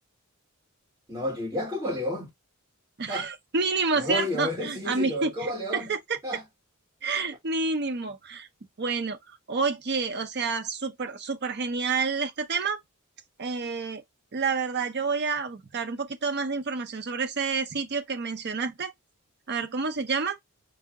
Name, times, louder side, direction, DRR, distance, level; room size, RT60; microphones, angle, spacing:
voice 1, 1.1-2.3 3.1-3.3 3.9-5.9 6.2-6.4, left 1 dB, 15° right, 1.6 m, -31 dB
voice 2, 3.0-6.2 7.0-8.5 8.8-12.8 13.4-14.0 14.3-18.9 19.5-20.4, right 4 dB, 50° right, 0.6 m, -29 dB
4.5 x 2.1 x 3.4 m
head